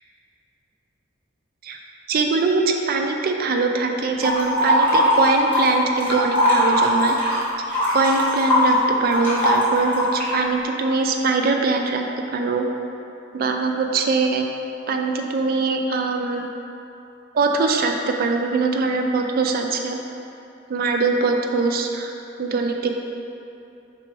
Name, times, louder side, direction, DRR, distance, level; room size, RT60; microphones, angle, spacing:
voice 1, 2.1-7.2 7.9-12.0 12.3-12.6 13.3-14.5 14.9-16.5 17.3-20.0 20.7-22.1 22.4-23.0, right 4 dB, 50° right, 3 dB, 0.4 m, -22 dB
sound 1, 4.2-5.7 6.0-10.4, left 1 dB, 10° left, 1.2 m, -20 dB
4.8 x 3.3 x 3.3 m, 2.8 s
head